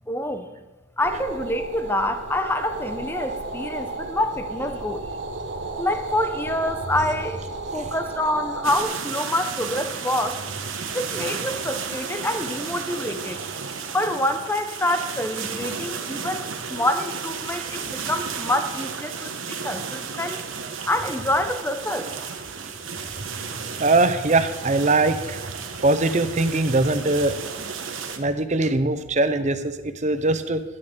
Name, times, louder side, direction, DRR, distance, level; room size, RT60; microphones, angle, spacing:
voice 1, 0.1-0.5 1.0-5.1 5.8-7.4 7.7-10.4 10.9-13.4 13.8-20.4 20.9-22.1, left 1 dB, 10° left, 8 dB, 0.7 m, -26 dB
sound 1, 1.0-8.8, right 3 dB, 60° right, 1.0 m, -33 dB
sound 2, 8.6-28.2, right 6 dB, 85° right, 1.2 m, -33 dB
voice 2, 23.2-25.4 25.7-27.7 28.2-30.6, right 2 dB, 35° right, 10 dB, 0.7 m, -22 dB
12.0 x 7.1 x 8.0 m, 1.2 s
head